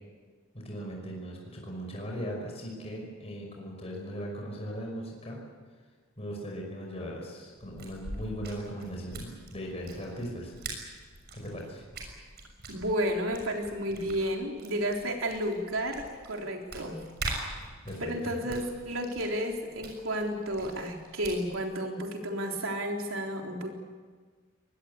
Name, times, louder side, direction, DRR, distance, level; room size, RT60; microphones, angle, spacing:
voice 1, 0.5-5.4 6.2-10.5 11.3-11.8 17.6-18.4, equal, 30° left, 0 dB, 5.6 m, -38 dB
sound 1, 7.6-21.7, right 2 dB, 50° right, 6.5 m, -43 dB
voice 2, 12.7-17.0 18.0-23.7, equal, 80° right, 1 dB, 3.9 m, -32 dB
23.5 x 20.0 x 8.6 m, 1.5 s
head